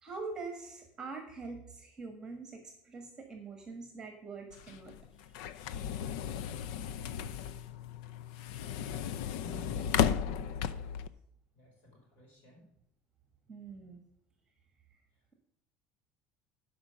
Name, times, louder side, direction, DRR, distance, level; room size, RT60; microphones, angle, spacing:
voice 1, 0.0-4.9 5.5-5.7 10.3-10.5 13.5-14.0, right 4 dB, 15° right, 4 dB, 1.4 m, -44 dB
sound 1, 4.5-11.1, left 9 dB, 85° left, 0.5 m, -35 dB
voice 2, 9.4-9.9 11.5-12.7 15.1-15.4, left 3 dB, 45° left, -2 dB, 5.1 m, -50 dB
11.5 x 5.1 x 6.8 m, 0.74 s
cardioid pair, 170°, 4 cm